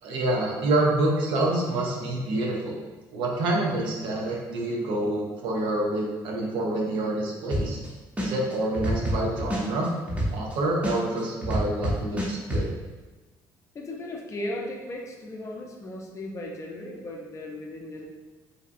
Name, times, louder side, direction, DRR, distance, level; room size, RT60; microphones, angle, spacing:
voice 1, 0.0-2.8 3.1-7.8 8.2-9.9 10.3-12.7, right 1 dB, 80° right, -1 dB, 0.5 m, -27 dB
sound 1, 7.5-7.9 8.2-10.5 10.8-12.6, equal, 15° right, 0.6 m, -27 dB
voice 2, 13.7-18.1, left 1 dB, 35° left, 0 dB, 0.5 m, -36 dB
2.7 x 2.2 x 2.5 m, 1.2 s
cardioid pair, 90°, 8 cm